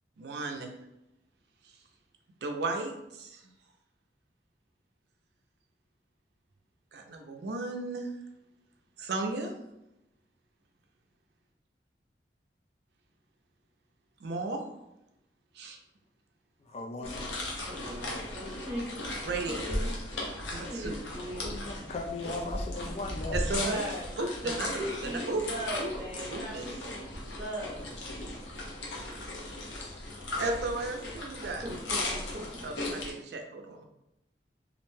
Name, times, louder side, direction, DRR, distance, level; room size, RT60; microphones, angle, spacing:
voice 1, 0.2-0.7 2.4-3.5 6.9-8.1 9.0-9.5 14.2-14.6 15.5-15.8 19.2-19.7 20.5-21.4 23.3-23.8 24.2-25.4 25.8-25.9 26.2-26.7 30.4-31.6 32.6-33.9, right 3 dB, 65° right, 4 dB, 0.4 m, -35 dB
voice 2, 16.7-17.2 21.4-23.7, left 3 dB, 35° left, 1 dB, 0.3 m, -38 dB
sound 1, 17.0-33.1, left 1 dB, 85° left, 0.6 m, -37 dB
voice 3, 17.6-19.0 19.5-19.9 20.6-21.6 23.6-24.0 24.4-27.8 31.6-32.7, equal, 40° right, -7 dB, 0.7 m, -39 dB
2.5 x 2.1 x 3.1 m, 0.87 s
head